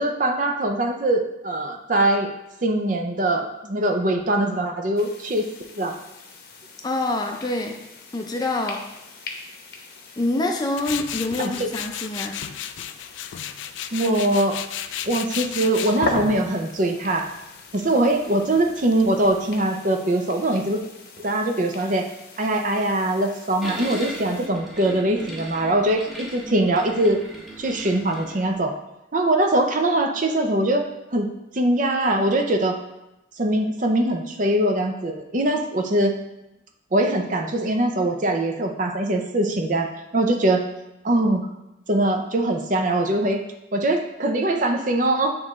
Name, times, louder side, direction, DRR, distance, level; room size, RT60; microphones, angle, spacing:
voice 1, 0.0-2.3 2.6-5.5 5.8-5.9 11.4-11.7 13.9-14.6 15.1-17.3 17.7-20.8 21.2-22.1 22.4-27.2 27.6-28.7 29.1-30.8 31.1-31.3 31.5-32.7 33.4-36.2 36.9-40.6 41.0-41.5 41.9-43.4 43.7-45.4, right 1 dB, 45° right, 3 dB, 0.6 m, -22 dB
sound 1, 5.0-24.5, left 2 dB, 55° left, 0.8 m, -40 dB
voice 2, 6.8-7.8 8.1-8.8 10.2-12.3, left 2 dB, 20° left, 2 dB, 0.5 m, -26 dB
Tools, 10.8-19.6, left 9 dB, 80° left, 0.3 m, -34 dB
sound 2, 23.6-28.6, right 1 dB, ahead, 0.9 m, -38 dB
8.7 x 3.1 x 3.6 m, 0.90 s
head